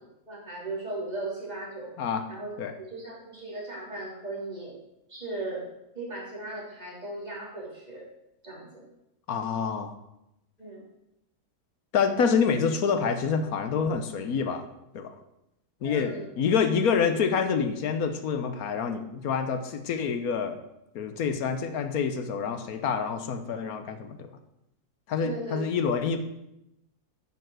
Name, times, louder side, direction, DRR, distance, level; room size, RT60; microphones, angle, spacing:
voice 1, 0.3-1.9 2.3-2.5 2.8-4.7 5.1-5.6 5.9-8.1 8.4-8.9 10.6-10.8 15.8-16.3 25.2-25.6, right 2 dB, 25° right, -5 dB, 3.0 m, -37 dB
voice 2, 9.3-9.9 11.9-14.7 14.9-15.1 15.8-20.6 20.9-24.3 25.1-26.2, left 6 dB, 70° left, 8 dB, 1.3 m, -27 dB
8.9 x 5.8 x 6.1 m, 0.86 s
omnidirectional pair, 1.6 m